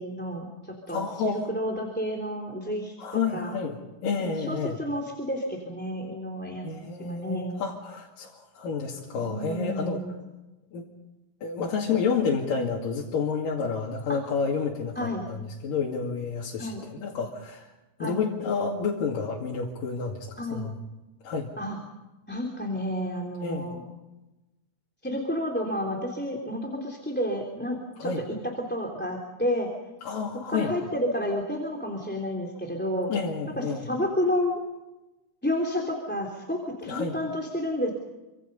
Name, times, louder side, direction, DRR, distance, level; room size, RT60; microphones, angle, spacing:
voice 1, 0.0-3.5 4.2-6.7 7.0-7.7 9.2-10.1 14.1-14.2 14.9-15.3 16.6-16.9 18.0-18.2 20.4-20.7 21.6-21.8 22.3-23.8 25.0-29.7 30.5-33.1 33.6-34.6 35.4-37.9, equal, 5° left, 2 dB, 2.8 m, -30 dB
voice 2, 0.9-1.5 3.0-4.8 6.6-10.0 10.7-10.9 11.4-17.7 18.0-20.8 21.2-21.5 23.4-23.7 28.0-28.2 30.0-30.7 33.1-33.8 36.8-37.1, left 5 dB, 85° left, -2 dB, 4.0 m, -30 dB
28.5 x 26.0 x 5.5 m, 1.0 s
omnidirectional pair, 3.8 m